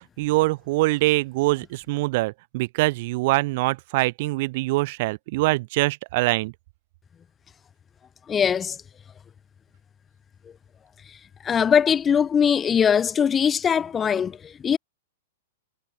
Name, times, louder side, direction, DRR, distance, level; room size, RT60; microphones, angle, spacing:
voice 1, 0.2-6.5, right 21 dB, 55° right, 3.6 m, -23 dB
voice 2, 8.3-8.8 11.4-14.8, left 7 dB, 20° left, 0.5 m, -21 dB
hypercardioid pair, 110°, 0 cm